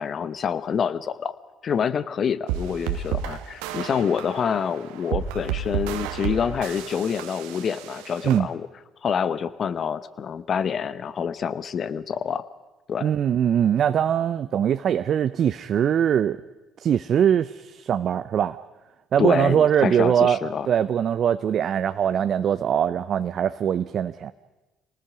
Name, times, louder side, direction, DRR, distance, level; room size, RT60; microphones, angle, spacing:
voice 1, 0.0-1.3 1.6-8.7 9.0-12.4 12.9-13.1 19.2-20.7, left 7 dB, 50° left, 14 dB, 1.0 m, -27 dB
sound 1, 2.5-8.4, right 9 dB, 75° right, 1.3 m, -31 dB
voice 2, 13.0-16.4 16.8-18.6 19.1-20.4 20.7-24.3, right 9 dB, 55° right, 11 dB, 0.6 m, -22 dB
28.5 x 19.0 x 5.1 m, 1.1 s
hypercardioid pair, 55°, 0 cm